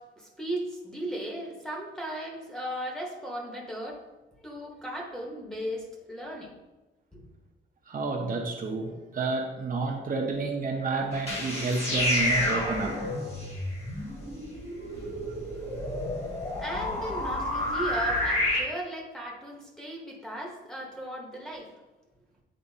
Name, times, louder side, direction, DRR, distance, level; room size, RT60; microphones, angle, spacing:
voice 1, 0.0-4.0 4.4-6.6 7.1-7.2 16.6-21.7, equal, 5° left, -3 dB, 1.0 m, -36 dB
voice 2, 7.9-13.0, right 3 dB, 45° right, 0 dB, 0.7 m, -30 dB
sound 1, 11.1-18.6, left 1 dB, 30° left, 1.5 m, -30 dB
8.7 x 4.3 x 2.7 m, 1.1 s
wide cardioid pair, 165°, 20 cm